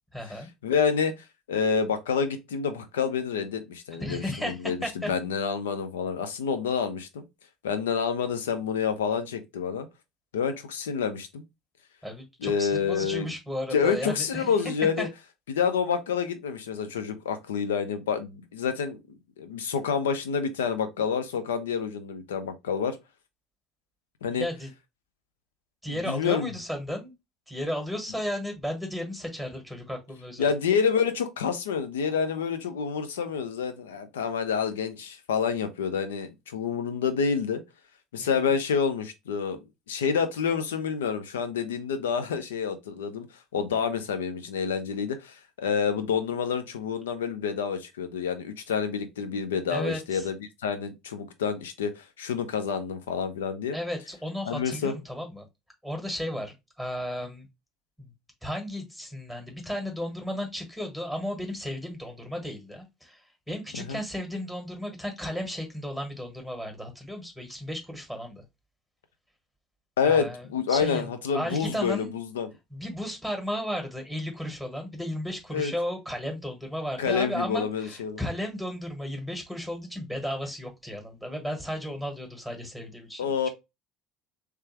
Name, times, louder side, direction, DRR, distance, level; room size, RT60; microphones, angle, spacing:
voice 1, 0.1-0.5 4.0-4.5 4.8-5.1 12.0-14.5 15.0-15.1 24.3-24.7 25.8-27.1 27.5-30.5 38.2-38.3 49.7-50.3 53.7-55.4 55.8-57.5 58.0-58.1 58.4-63.2 63.5-68.4 70.0-70.4 70.7-71.1 71.3-72.1 72.7-83.5, equal, 5° left, 1.6 m, -34 dB
voice 2, 0.6-7.2 7.6-9.9 10.3-11.4 12.4-13.3 13.7-15.1 15.5-19.0 19.4-23.0 24.2-24.5 25.9-26.5 30.4-37.6 38.1-39.6 39.9-43.3 43.5-50.4 50.6-53.8 54.5-54.9 63.8-64.0 70.0-72.5 75.5-75.7 77.0-78.2 83.2-83.5, left 6 dB, 70° left, 0.6 m, -28 dB
3.3 x 3.3 x 3.3 m
figure-of-eight pair, 60°, 0 cm